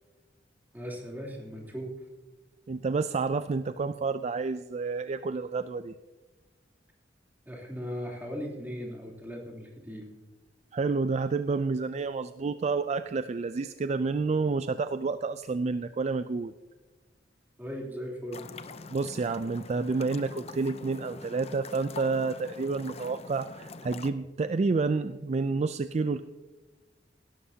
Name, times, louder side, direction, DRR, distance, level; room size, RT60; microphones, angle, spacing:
voice 1, 0.7-1.9 7.5-10.1 17.6-18.4, equal, 10° right, -2 dB, 3.1 m, -38 dB
voice 2, 2.7-5.9 10.7-16.5 18.9-26.2, right 4 dB, 40° right, 12 dB, 0.4 m, -29 dB
sound 1, 18.3-24.1, left 4 dB, 35° left, 0.6 m, -45 dB
17.5 x 12.5 x 2.8 m, 1.2 s
head